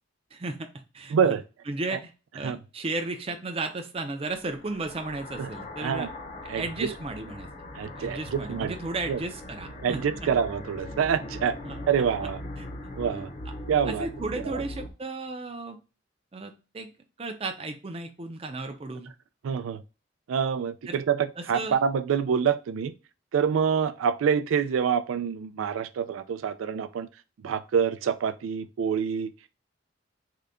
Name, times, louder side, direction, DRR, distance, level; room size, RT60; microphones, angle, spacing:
voice 1, 0.3-0.7 0.9-1.3 1.7-6.1 6.6-7.5 8.0-10.0 11.6-11.8 12.2-12.3 12.6-12.7 13.9-15.8 16.3-16.9 17.2-19.1 20.9-21.0 21.4-21.8, right 3 dB, 30° right, 0.5 m, -34 dB
voice 2, 1.1-1.4 1.9-2.0 2.4-2.6 5.4-5.5 5.8-6.1 6.5-6.9 7.7-8.7 9.1-9.2 9.8-11.6 11.9-12.4 13.0-13.3 13.7-14.1 14.5-14.6 19.4-19.8 20.3-22.9 23.3-27.1 27.4-29.3, right 7 dB, 90° right, 0.3 m, -26 dB
sound 1, 4.4-14.9, left 1 dB, 35° left, 0.5 m, -40 dB
3.8 x 2.2 x 3.4 m
head